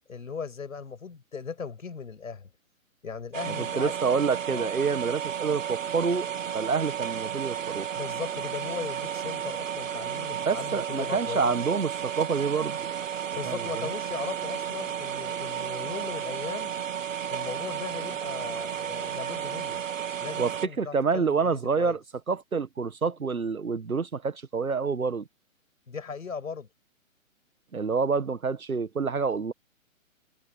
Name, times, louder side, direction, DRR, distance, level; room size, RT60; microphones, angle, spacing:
voice 1, 0.1-2.5 3.0-4.0 4.5-4.7 8.0-11.5 13.3-16.7 17.3-19.8 20.2-22.0 25.9-26.7, left 5 dB, 75° left, 5.9 m, -38 dB
sound 1, 3.3-20.7, right 9 dB, 65° right, 2.4 m, -33 dB
voice 2, 3.5-6.3 6.5-7.9 10.4-12.9 13.4-13.9 20.4-22.0 22.3-25.3 27.7-29.5, right 5 dB, 85° right, 1.6 m, -27 dB
figure-of-eight pair, 135°, 41 cm